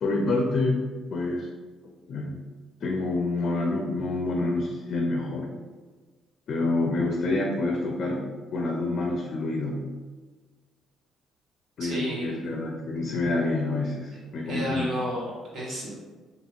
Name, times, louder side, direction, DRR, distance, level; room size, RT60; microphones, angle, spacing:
voice 1, 0.0-1.5 2.1-2.4 2.8-5.5 6.5-9.9 11.8-14.9, left 2 dB, 55° left, 0 dB, 0.4 m, -27 dB
voice 2, 11.8-12.4 14.4-16.0, equal, 75° right, -6 dB, 1.1 m, -32 dB
2.8 x 2.7 x 2.4 m, 1.4 s
cardioid pair, 85°, 0 cm